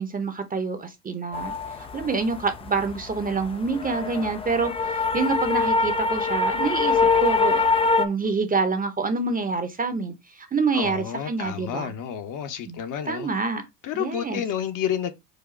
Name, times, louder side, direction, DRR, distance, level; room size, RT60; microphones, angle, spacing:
voice 1, 0.0-7.7 8.0-11.9 12.7-12.8 13.1-13.6 13.9-14.4, right 4 dB, 20° right, 0.7 m, -27 dB
sound 1, 1.3-8.1, left 4 dB, 15° left, 0.3 m, -24 dB
voice 2, 10.7-13.3 13.8-15.1, left 9 dB, 40° left, 0.9 m, -30 dB
4.9 x 2.2 x 4.3 m
hypercardioid pair, 85°, 48 cm